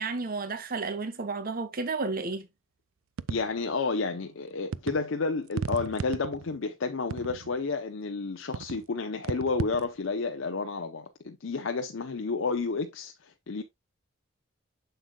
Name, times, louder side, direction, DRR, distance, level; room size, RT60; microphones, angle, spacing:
voice 1, 0.0-2.5, right 3 dB, 45° right, 0.8 m, -32 dB
sound 1, 3.2-3.7 4.7-5.0 5.5-6.6 7.1-7.6 8.5-8.8 9.2-9.9, right 5 dB, 85° right, 0.4 m, -35 dB
voice 2, 3.3-13.6, left 4 dB, 70° left, 0.6 m, -31 dB
7.4 x 6.7 x 2.2 m
head